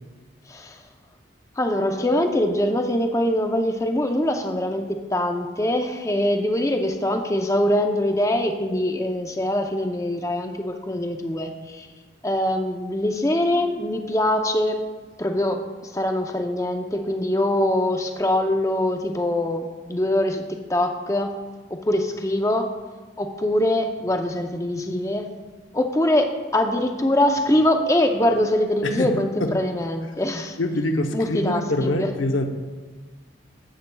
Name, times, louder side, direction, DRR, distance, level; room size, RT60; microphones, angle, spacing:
voice 1, 1.6-11.9 12.2-14.8 15.2-15.6 15.9-21.4 21.7-22.7 23.2-25.3 25.7-30.6 31.1-32.1, left 1 dB, 15° left, 5 dB, 0.5 m, -23 dB
voice 2, 28.8-29.6 30.6-32.5, left 1 dB, 90° left, 6 dB, 0.8 m, -25 dB
12.0 x 8.2 x 2.3 m, 1.4 s
head